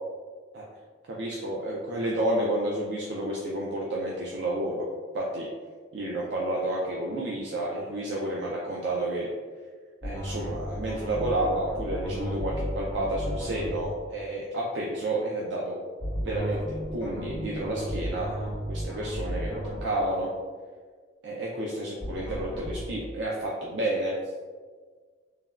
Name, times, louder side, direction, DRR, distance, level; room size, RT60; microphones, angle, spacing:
voice 1, 1.1-4.9 5.1-5.5 5.9-9.3 10.0-15.8 16.2-20.3 21.2-24.3, right 1 dB, 85° right, -3 dB, 0.4 m, -30 dB
sound 1, 10.0-13.9 16.0-19.9 22.0-22.9, equal, 15° left, 0.9 m, -34 dB
3.2 x 2.1 x 2.3 m, 1.5 s
head